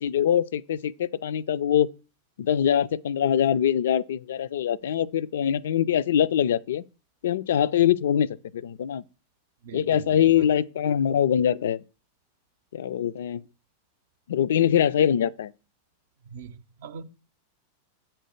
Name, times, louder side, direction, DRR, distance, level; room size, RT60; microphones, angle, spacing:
voice 1, 0.0-1.9 2.4-6.8 7.2-8.3 8.5-9.0 9.7-11.8 12.7-13.4 14.3-15.5, left 9 dB, 60° left, 0.3 m, -23 dB
voice 2, 9.6-10.5 16.3-17.0, right 4 dB, 60° right, 0.6 m, -41 dB
7.7 x 4.5 x 6.4 m
figure-of-eight pair, 90°, 0 cm